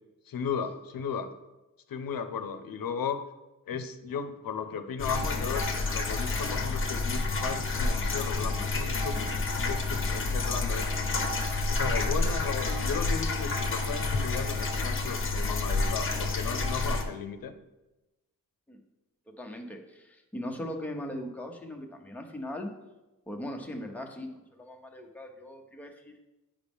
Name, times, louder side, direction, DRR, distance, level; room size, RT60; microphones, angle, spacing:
voice 1, 0.3-1.3 1.9-3.2 3.7-10.9 11.7-17.5, left 6 dB, 90° left, 8 dB, 0.7 m, -35 dB
sound 1, 5.0-17.0, left 3 dB, 40° left, 0.9 m, -29 dB
voice 2, 19.3-22.7 23.3-26.3, left 1 dB, 5° left, 2 dB, 0.8 m, -39 dB
9.8 x 5.1 x 3.5 m, 1.0 s
wide cardioid pair, 140°, 34 cm